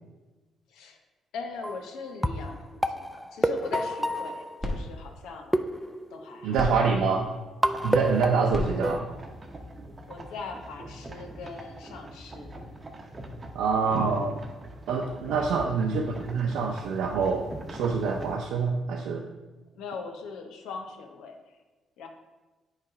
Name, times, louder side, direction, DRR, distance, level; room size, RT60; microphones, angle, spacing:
voice 1, 1.3-5.6 6.1-6.7 10.1-12.5 15.4-15.6 19.7-21.6 22.0-22.1, left 4 dB, 85° left, 4 dB, 0.9 m, -40 dB
sound 1, 1.5-1.8 2.2-5.0 5.5-6.6 7.6-9.0, equal, ahead, 0.4 m, -29 dB
sound 2, 4.0-10.4, left 1 dB, 15° left, 1.5 m, -39 dB
voice 2, 6.4-7.3 7.8-9.0 13.5-14.4 14.9-19.2, right 5 dB, 90° right, 0 dB, 0.6 m, -26 dB
sound 3, 7.7-18.4, right 1 dB, 30° right, 0.8 m, -43 dB
8.5 x 3.4 x 4.9 m, 1.2 s
cardioid pair, 90°, 0 cm